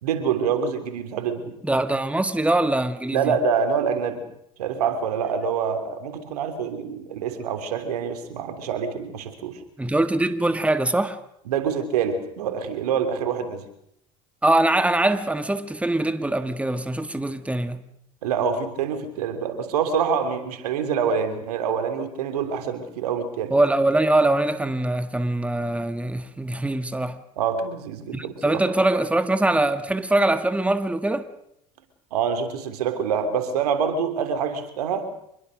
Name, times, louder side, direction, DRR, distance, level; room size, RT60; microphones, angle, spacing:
voice 1, 0.0-1.5 3.1-4.2 4.6-9.6 11.5-13.6 18.2-23.5 27.4-28.6 32.1-35.1, right 6 dB, 80° right, 3.3 m, -26 dB
voice 2, 1.6-3.4 9.8-11.2 14.4-17.8 23.5-27.2 28.1-31.3, right 2 dB, 5° right, 1.7 m, -23 dB
26.0 x 21.5 x 6.5 m
hypercardioid pair, 80°, 19 cm